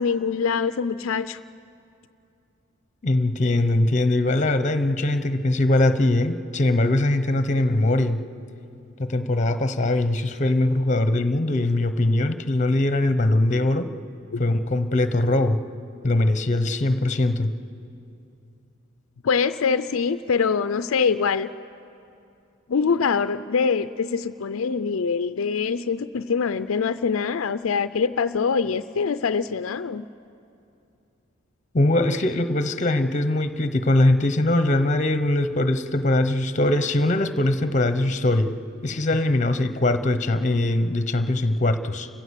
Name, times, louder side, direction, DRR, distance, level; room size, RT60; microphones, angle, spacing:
voice 1, 0.0-1.4 14.3-14.4 19.2-21.5 22.7-30.1, left 5 dB, 80° left, 12 dB, 0.5 m, -24 dB
voice 2, 3.0-8.2 9.0-13.9 14.4-15.6 16.0-17.5 31.7-38.5 38.8-42.1, left 1 dB, 35° left, 10 dB, 0.9 m, -21 dB
29.0 x 15.5 x 8.2 m, 2.6 s
head